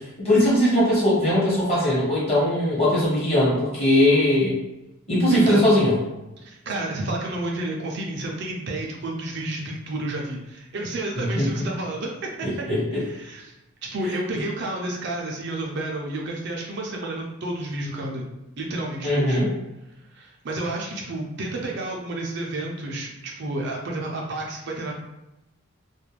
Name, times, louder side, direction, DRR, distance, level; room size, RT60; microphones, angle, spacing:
voice 1, 0.2-4.6 5.1-5.9 11.2-11.4 12.4-13.0 19.0-19.5, left 1 dB, 30° left, -7 dB, 1.1 m, -20 dB
voice 2, 5.3-5.7 6.4-12.5 12.9-13.5 13.9-18.2 18.6-19.4 20.1-24.9, right 2 dB, 55° right, -1 dB, 0.4 m, -30 dB
2.4 x 2.2 x 3.1 m, 0.98 s
head